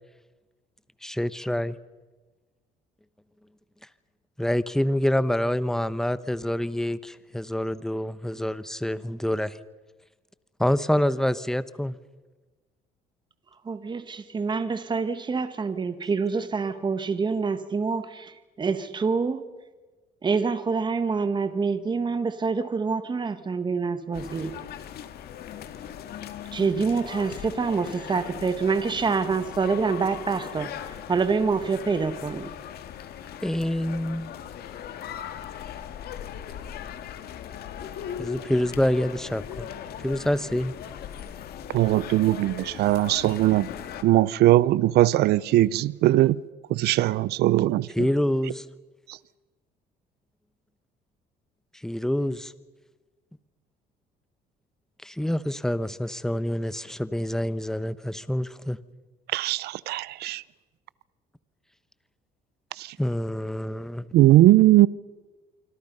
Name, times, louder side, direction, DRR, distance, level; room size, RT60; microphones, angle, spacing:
voice 1, 1.0-1.7 4.4-9.5 10.6-11.9 33.4-34.3 38.2-39.7 40.0-40.7 48.0-48.6 51.8-52.5 55.0-58.8 63.0-64.1, left 1 dB, 5° left, 0.9 m, -26 dB
voice 2, 13.6-19.4 20.2-24.5 26.5-30.7 31.1-32.5, right 5 dB, 25° right, 1.6 m, -26 dB
sound 1, 24.1-44.0, left 9 dB, 70° left, 1.9 m, -39 dB
voice 3, 41.7-43.7 44.0-46.4 46.7-48.1 59.3-60.4 62.8-62.9 64.1-64.9, right 15 dB, 75° right, 0.6 m, -20 dB
26.0 x 25.5 x 5.5 m
cardioid pair, 110°, 17 cm